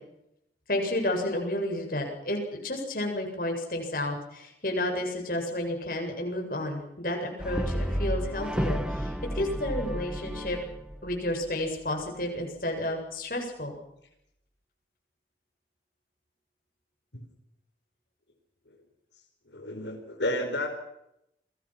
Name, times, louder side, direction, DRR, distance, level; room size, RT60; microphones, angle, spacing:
voice 1, 0.7-10.6 11.0-13.8, left 1 dB, 55° left, 2 dB, 7.7 m, -31 dB
Brass instrument, 7.4-11.7, equal, 5° right, 1.8 m, -32 dB
voice 2, 19.5-20.7, left 1 dB, 90° left, 3 dB, 5.1 m, -31 dB
29.5 x 22.5 x 6.2 m, 0.80 s
head